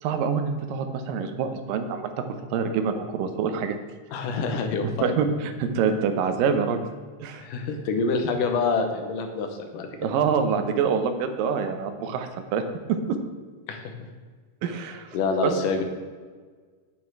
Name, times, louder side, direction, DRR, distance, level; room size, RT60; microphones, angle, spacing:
voice 1, 0.0-3.8 5.0-6.8 7.2-7.5 10.0-12.6 12.9-13.2 14.6-15.1 15.4-15.5, right 6 dB, 90° right, 8 dB, 2.6 m, -26 dB
voice 2, 4.1-5.2 7.4-9.9 13.7-14.1 15.1-15.8, left 4 dB, 80° left, 5 dB, 2.6 m, -27 dB
9.1 x 8.8 x 4.6 m, 1.5 s
omnidirectional pair, 3.8 m